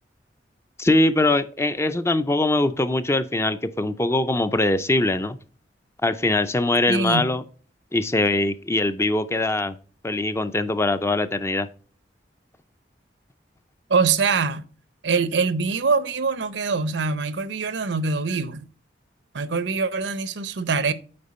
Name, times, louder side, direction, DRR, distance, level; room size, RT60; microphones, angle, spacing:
voice 1, 0.8-5.4 6.0-7.4 7.9-9.8 10.0-11.7, left 2 dB, 15° left, 0.4 m, -22 dB
voice 2, 6.9-7.3 13.9-14.6 15.0-18.7 19.3-20.9, right 4 dB, 75° right, 0.7 m, -24 dB
8.7 x 4.3 x 4.2 m
head